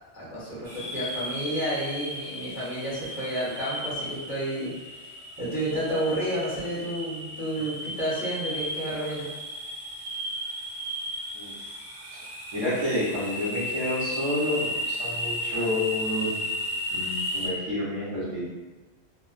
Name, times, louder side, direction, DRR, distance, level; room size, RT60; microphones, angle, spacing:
voice 1, 0.1-5.1 5.4-9.3, right 1 dB, 20° left, -9 dB, 0.9 m, -31 dB
sound 1, 0.6-17.5, equal, 80° right, 1.1 m, -34 dB
voice 2, 11.3-11.7 12.5-16.4 16.9-18.4, left 1 dB, 30° right, -15 dB, 1.0 m, -29 dB
2.4 x 2.2 x 2.4 m, 1.2 s
omnidirectional pair, 1.1 m